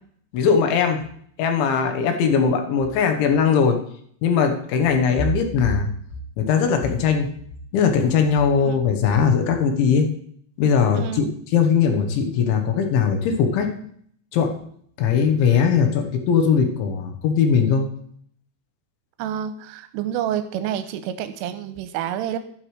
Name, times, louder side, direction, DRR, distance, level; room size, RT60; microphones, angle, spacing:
voice 1, 0.3-1.0 1.4-3.8 4.2-5.9 6.4-7.3 7.7-10.1 10.6-11.3 11.5-13.7 14.3-14.6 15.0-17.9, left 6 dB, 75° left, 5 dB, 3.3 m, -19 dB
voice 2, 10.9-11.3 19.2-22.4, right 10 dB, 85° right, 10 dB, 3.1 m, -28 dB
12.0 x 11.5 x 3.2 m, 0.63 s
omnidirectional pair, 5.9 m